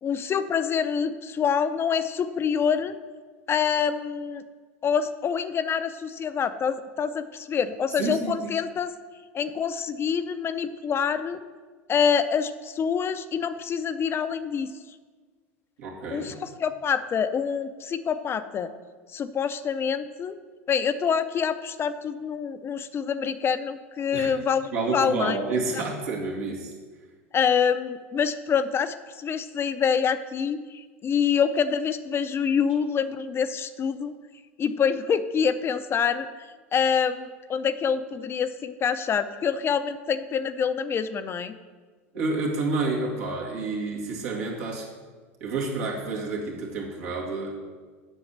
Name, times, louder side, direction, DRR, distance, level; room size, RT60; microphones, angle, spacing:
voice 1, 0.0-2.9 3.5-4.4 4.8-8.9 9.3-11.4 11.9-14.7 16.1-18.7 19.1-20.4 20.7-25.4 25.8-25.9 27.3-34.1 34.6-36.3 36.7-41.5, left 7 dB, 35° left, 11 dB, 0.6 m, -26 dB
voice 2, 8.0-8.3 15.8-16.4 24.1-24.3 24.7-26.7 42.1-44.9 45.4-47.6, right 3 dB, 75° right, -2 dB, 2.5 m, -29 dB
8.0 x 6.2 x 7.2 m, 1.5 s
hypercardioid pair, 90°, 7 cm